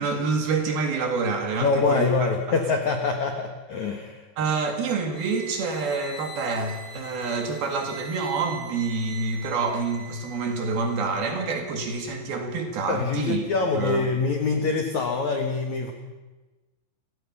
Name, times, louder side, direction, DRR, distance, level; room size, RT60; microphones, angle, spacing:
voice 1, 0.0-2.6 4.4-13.4 13.7-14.0, right 4 dB, 55° right, 4 dB, 3.5 m, -27 dB
voice 2, 1.6-4.3 12.9-15.9, left 4 dB, 75° left, 4 dB, 1.7 m, -25 dB
sound 1, 5.1-11.4, right 3 dB, 25° left, 3.6 m, -42 dB
28.5 x 16.5 x 5.5 m, 1.2 s
omnidirectional pair, 5.7 m